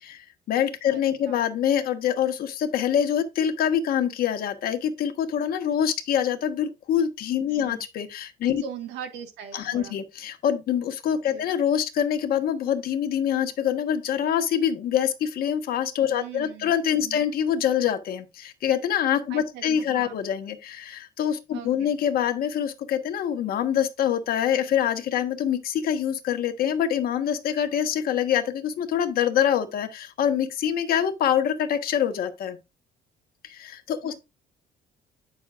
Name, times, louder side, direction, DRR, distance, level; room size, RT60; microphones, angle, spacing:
voice 1, 0.0-8.6 9.5-32.6 33.4-34.1, left 9 dB, 65° left, 1.3 m, -25 dB
voice 2, 0.9-1.4 7.5-7.8 8.4-10.0 11.3-11.5 16.1-16.7 17.0-17.3 19.3-20.2 21.5-21.9 34.0-34.2, right 8 dB, 90° right, 1.8 m, -40 dB
9.5 x 6.2 x 2.4 m
cardioid pair, 110°, 17 cm